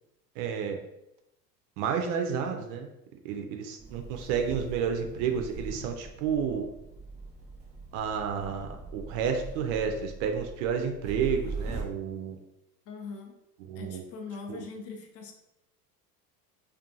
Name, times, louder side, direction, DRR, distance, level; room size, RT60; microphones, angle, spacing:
voice 1, 0.4-0.8 1.8-2.9 3.2-6.7 7.9-12.4 13.6-14.0 14.5-14.6, right 7 dB, 50° right, 4 dB, 0.5 m, -31 dB
sound 1, 3.8-11.8, right 3 dB, 15° right, 0.8 m, -41 dB
voice 2, 12.9-13.3 13.7-15.3, left 4 dB, 30° left, 3 dB, 0.5 m, -41 dB
2.4 x 2.3 x 2.6 m, 0.84 s
hypercardioid pair, 75°, 49 cm